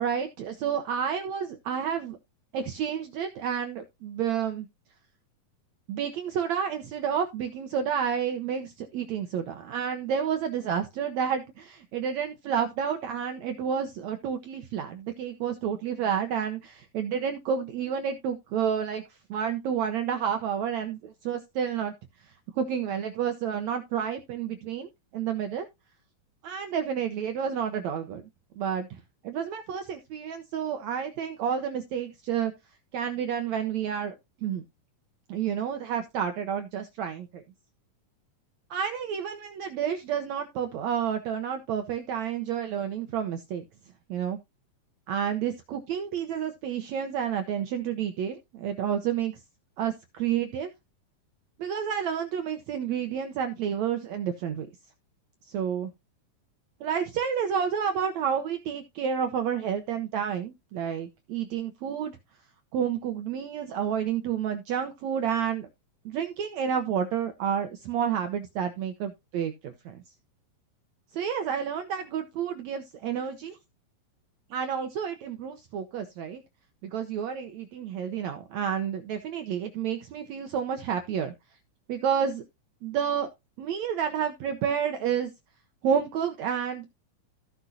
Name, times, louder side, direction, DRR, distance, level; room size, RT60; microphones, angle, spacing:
voice 1, 0.0-2.2 2.5-4.7 5.9-21.9 22.2-25.7 26.4-28.2 28.6-32.5 32.9-34.2 34.4-34.6 35.3-37.4 38.7-43.6 44.1-44.4 45.1-49.4 49.8-50.7 51.6-54.7 55.5-55.9 56.8-62.2 62.7-65.7 66.1-70.0 71.1-73.6 74.5-76.4 76.8-81.3 81.9-82.4 82.8-83.3 83.6-85.3 85.8-86.9, right 8 dB, 70° right, 1.8 m, -30 dB
15.0 x 6.0 x 2.7 m
omnidirectional pair, 4.0 m